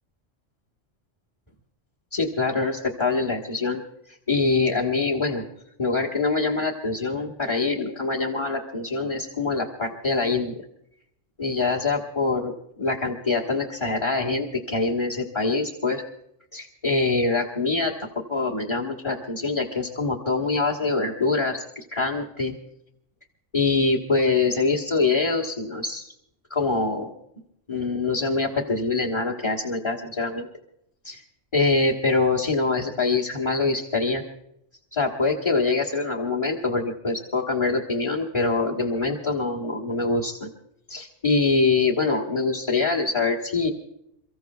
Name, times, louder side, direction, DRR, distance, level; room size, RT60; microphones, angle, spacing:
voice 1, 2.1-3.8 4.1-5.4 5.8-10.6 11.4-12.5 12.8-16.0 16.5-17.9 18.3-22.5 23.5-26.1 26.5-27.1 27.7-30.5 31.0-31.2 31.5-34.2 34.9-40.5 40.9-43.7, left 3 dB, 25° left, -2 dB, 1.4 m, -24 dB
29.5 x 15.0 x 2.3 m, 0.78 s
omnidirectional pair, 1.3 m